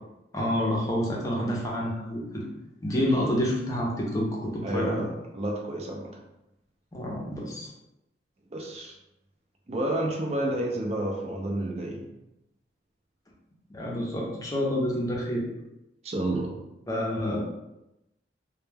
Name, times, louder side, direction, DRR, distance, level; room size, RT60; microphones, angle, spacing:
voice 1, 0.3-2.4 2.8-5.0 6.9-7.7 13.7-15.5 16.9-17.4, equal, 20° left, -3 dB, 0.5 m, -28 dB
voice 2, 4.6-6.1 8.5-9.0 9.7-12.1 16.0-16.6, right 1 dB, 35° right, 0 dB, 0.4 m, -30 dB
2.2 x 2.1 x 3.2 m, 0.90 s
head